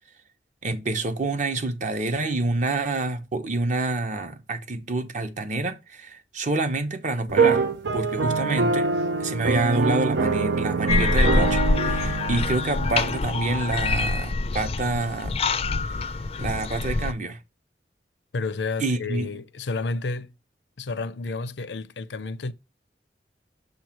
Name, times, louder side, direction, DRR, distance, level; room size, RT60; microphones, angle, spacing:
voice 1, 0.6-7.6 7.9-8.9 9.2-15.4 16.4-17.4 18.8-19.3, right 2 dB, 45° right, 0.9 m, -27 dB
sound 1, 7.3-13.2, right 4 dB, 90° right, 0.7 m, -24 dB
sound 2, 10.9-17.1, left 3 dB, 35° left, 0.4 m, -25 dB
voice 2, 18.3-20.3 20.8-22.5, left 3 dB, 80° left, 0.6 m, -31 dB
6.8 x 3.2 x 5.8 m
head